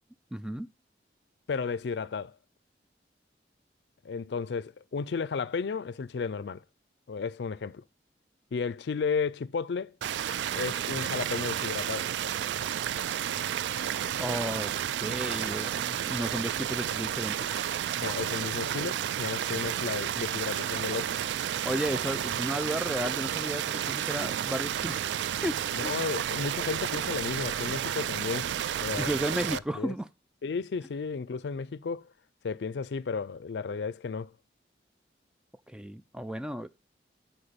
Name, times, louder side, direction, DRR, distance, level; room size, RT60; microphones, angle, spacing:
voice 1, 0.3-0.7 14.2-14.7 15.0-17.4 21.6-25.1 25.4-26.0 29.0-30.1 35.7-36.7, equal, 5° right, 0.3 m, -33 dB
voice 2, 1.5-2.4 4.0-6.6 7.1-7.8 8.5-9.9 10.6-12.1 18.0-21.1 25.7-28.5 28.8-29.1 29.5-29.9 30.4-32.1 32.4-34.3, left 5 dB, 80° left, 0.4 m, -33 dB
sound 1, 10.0-29.6, right 10 dB, 85° right, 0.3 m, -31 dB
8.8 x 4.6 x 5.1 m
head